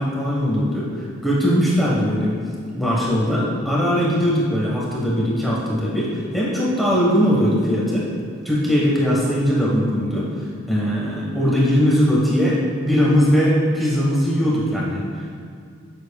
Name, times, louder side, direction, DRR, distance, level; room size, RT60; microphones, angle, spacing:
voice 1, 0.0-2.3 2.7-8.1 8.4-10.3 10.7-15.0, equal, ahead, -6 dB, 1.3 m, -20 dB
11.5 x 7.3 x 2.3 m, 2.2 s
head